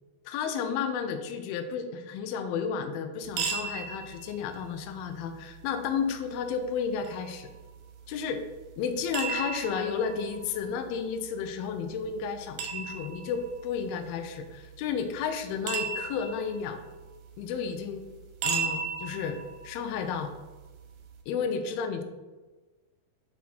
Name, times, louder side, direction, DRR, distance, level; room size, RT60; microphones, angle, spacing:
voice 1, 0.3-7.5 8.1-8.5 8.8-16.8 17.4-18.0 18.4-19.4 19.6-20.3 21.3-22.0, left 6 dB, 90° left, 7 dB, 2.1 m, -32 dB
sound 1, 3.2-21.2, right 5 dB, 80° right, 1.9 m, -38 dB
8.2 x 2.7 x 4.2 m, 1.2 s
omnidirectional pair, 4.8 m